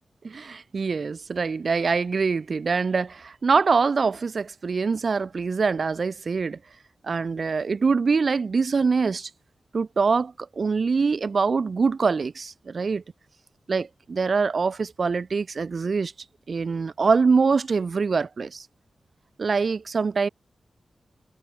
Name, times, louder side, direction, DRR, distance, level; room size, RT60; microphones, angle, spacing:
voice 1, 0.2-6.6 7.0-9.3 9.7-13.0 13.7-16.1 16.5-18.7 19.4-20.3, right 4 dB, 50° right, 0.5 m, -24 dB
wide cardioid pair, 135°, 0 cm